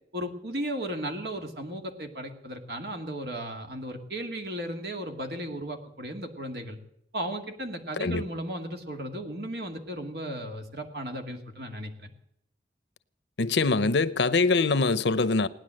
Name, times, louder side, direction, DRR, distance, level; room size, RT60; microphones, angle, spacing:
voice 1, 0.1-6.8 7.1-12.1 13.6-13.8, right 1 dB, 60° right, 2.3 m, -35 dB
voice 2, 13.4-15.5, left 3 dB, 80° left, 0.8 m, -23 dB
18.0 x 10.5 x 7.7 m
head